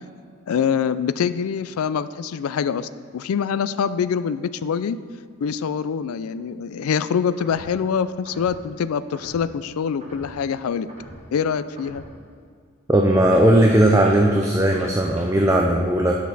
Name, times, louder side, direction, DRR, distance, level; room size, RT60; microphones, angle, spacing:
voice 1, 0.5-5.0 5.4-10.9 11.3-12.0, left 7 dB, 85° left, 14 dB, 0.4 m, -25 dB
sound 1, 7.4-7.8 8.2-8.6 9.1-9.5 10.0-10.4 10.9-11.3 11.8-12.1 13.3-15.3, equal, 30° right, 1.5 m, -43 dB
voice 2, 12.9-16.1, right 1 dB, 15° right, 1 dB, 0.4 m, -17 dB
11.5 x 6.3 x 4.0 m, 2.1 s
head